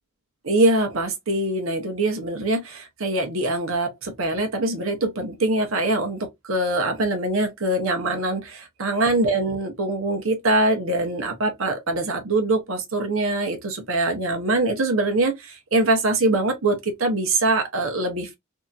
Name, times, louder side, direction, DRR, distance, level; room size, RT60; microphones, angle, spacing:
voice 1, 0.4-18.3, right 2 dB, 85° right, 0.9 m, -23 dB
2.8 x 2.6 x 2.3 m
head